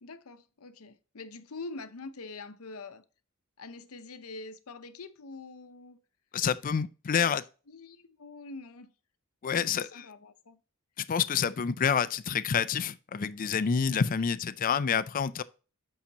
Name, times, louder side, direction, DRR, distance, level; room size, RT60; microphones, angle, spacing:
voice 1, 0.0-3.0 3.6-6.0 7.1-7.4 7.7-8.9 9.4-10.6, left 3 dB, 80° left, 0.7 m, -45 dB
voice 2, 6.3-7.4 9.4-9.9 11.0-15.4, left 7 dB, 40° left, 0.4 m, -28 dB
8.5 x 5.7 x 2.9 m
head